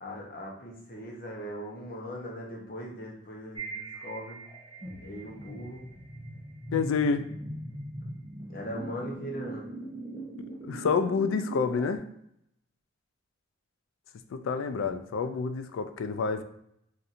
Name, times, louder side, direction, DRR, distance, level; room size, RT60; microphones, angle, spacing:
voice 1, 0.0-4.5 5.0-5.8 8.5-9.7 14.7-15.0, equal, 45° left, -1 dB, 0.7 m, -40 dB
sound 1, 3.6-12.0, right 1 dB, 30° right, 1.1 m, -41 dB
voice 2, 6.7-7.2 10.4-12.1 14.3-16.4, left 5 dB, 80° left, 10 dB, 0.3 m, -28 dB
4.2 x 2.5 x 2.5 m, 0.75 s
head